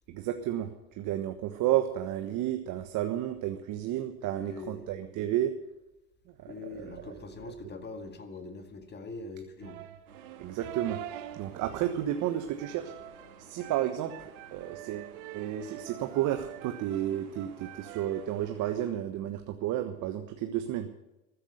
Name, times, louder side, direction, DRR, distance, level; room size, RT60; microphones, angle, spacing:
voice 1, 0.1-0.7 1.0-5.5 6.4-7.1 7.5-7.6 10.4-11.0 11.3-12.9 13.4-20.9, right 12 dB, 45° right, 7 dB, 1.3 m, -32 dB
voice 2, 4.3-4.9 6.5-9.9, left 3 dB, 25° left, 8 dB, 1.9 m, -43 dB
sound 1, 9.6-18.8, right 13 dB, 65° right, 1.4 m, -46 dB
sound 2, 10.1-18.9, right 5 dB, 85° right, 3.3 m, -54 dB
14.0 x 9.9 x 8.1 m, 0.98 s
hypercardioid pair, 100°, 42 cm